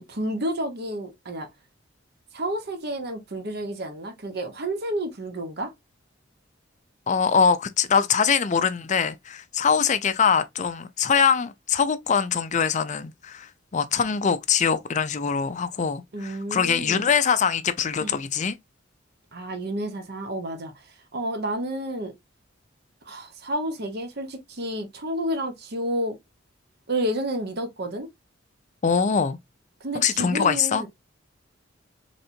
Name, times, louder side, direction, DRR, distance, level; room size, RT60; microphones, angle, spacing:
voice 1, 0.0-1.5 2.3-5.7 16.1-17.1 18.0-18.2 19.3-20.7 21.1-22.1 23.1-26.2 26.9-28.1 29.8-30.9, right 1 dB, 55° right, 0.9 m, -30 dB
voice 2, 7.1-18.5 28.8-29.4 30.0-30.8, left 6 dB, 40° left, 0.5 m, -23 dB
4.2 x 3.3 x 2.6 m
head